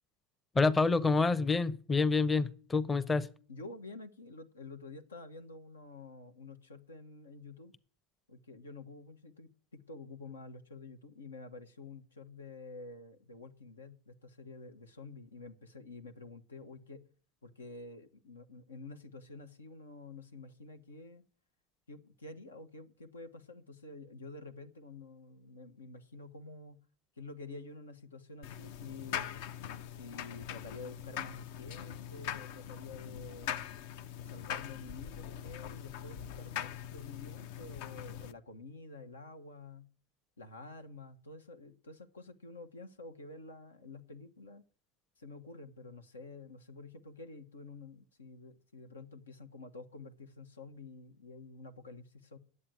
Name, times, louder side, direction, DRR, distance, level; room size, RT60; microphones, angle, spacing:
voice 1, 0.5-3.3, left 4 dB, 15° left, 0.8 m, -27 dB
voice 2, 3.5-7.7 8.3-17.0 17.4-21.2 21.9-26.8 27.2-29.3 30.0-33.7 34.2-39.9 40.4-44.6 45.2-52.4, left 3 dB, 85° left, 1.2 m, -49 dB
sound 1, 28.4-38.3, left 10 dB, 60° left, 0.7 m, -42 dB
10.0 x 8.1 x 9.3 m
hypercardioid pair, 85°, 0 cm